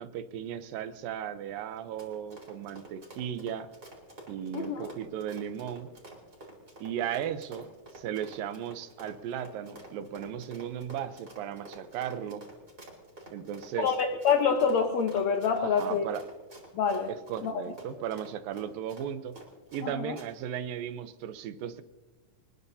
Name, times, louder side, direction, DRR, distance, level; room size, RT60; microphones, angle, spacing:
voice 1, 0.0-3.7 4.3-5.9 6.8-12.4 13.3-13.9 15.6-16.2 17.1-19.4 19.7-21.8, right 9 dB, 85° right, 11 dB, 2.6 m, -36 dB
Run, 1.7-19.9 20.2-20.3, right 1 dB, 20° right, 4.7 m, -49 dB
voice 2, 4.5-4.9 13.8-16.1 16.7-17.1 17.4-17.5 19.8-20.2, left 6 dB, 65° left, 4 dB, 2.0 m, -26 dB
25.0 x 20.5 x 2.8 m, 1.1 s
omnidirectional pair, 3.9 m